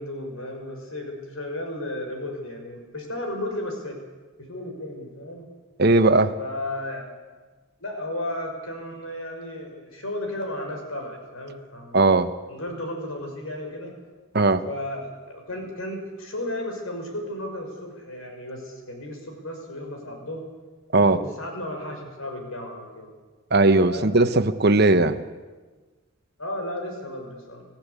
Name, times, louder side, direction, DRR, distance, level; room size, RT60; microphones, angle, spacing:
voice 1, 0.0-4.0 4.4-5.5 6.4-7.1 7.8-12.1 12.5-13.9 14.6-20.5 21.0-23.1 23.8-24.2 26.4-27.7, left 1 dB, 85° left, 3 dB, 6.0 m, -34 dB
voice 2, 5.8-6.3 11.9-12.3 14.3-14.6 20.9-21.2 23.5-25.2, right 2 dB, 50° right, 10 dB, 1.1 m, -18 dB
27.5 x 16.0 x 8.4 m, 1.3 s
head